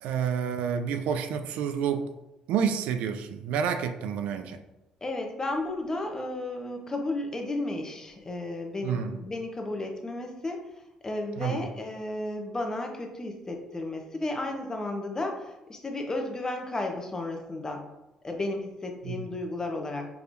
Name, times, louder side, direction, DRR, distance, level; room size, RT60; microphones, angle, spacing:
voice 1, 0.0-2.1 2.5-4.6 8.8-9.2 11.4-11.6 19.0-19.3, right 7 dB, 70° right, 8 dB, 0.3 m, -29 dB
voice 2, 5.0-10.6 11.0-17.8 18.2-20.1, left 2 dB, 25° left, 3 dB, 0.9 m, -33 dB
4.6 x 3.2 x 2.6 m, 0.95 s
hypercardioid pair, 55°, 2 cm